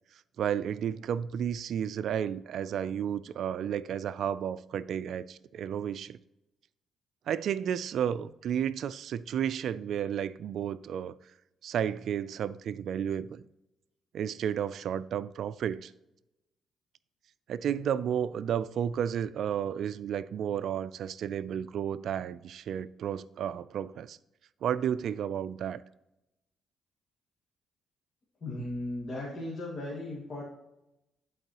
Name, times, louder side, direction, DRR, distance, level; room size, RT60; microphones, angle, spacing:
voice 1, 0.4-6.2 7.3-11.1 11.6-13.4 14.1-15.9 17.5-24.2 24.6-25.8, right 9 dB, 70° right, 0.3 m, -32 dB
voice 2, 28.4-30.4, left 1 dB, 40° left, 1.9 m, -36 dB
11.0 x 4.6 x 2.9 m
cardioid pair, 90°, 0 cm